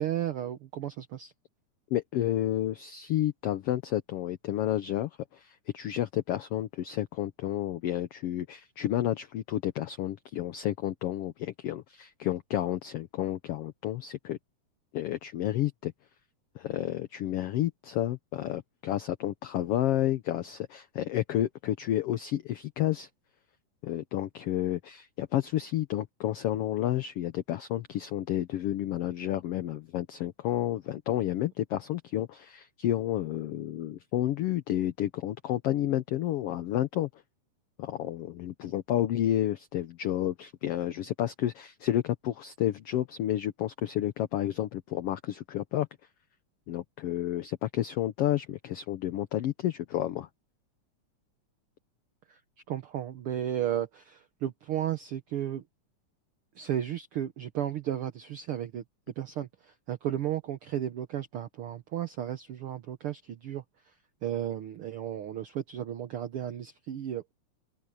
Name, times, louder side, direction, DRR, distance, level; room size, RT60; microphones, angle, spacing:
voice 1, 0.0-1.3 52.3-52.4 52.7-55.6 56.6-58.8 59.2-63.6 64.2-67.3, right 11 dB, 65° right, 1.5 m, -34 dB
voice 2, 1.9-14.4 14.9-15.9 16.5-23.1 23.8-37.1 37.8-45.9 46.7-50.3, left 12 dB, 70° left, 1.5 m, -30 dB
open air
omnidirectional pair, 3.4 m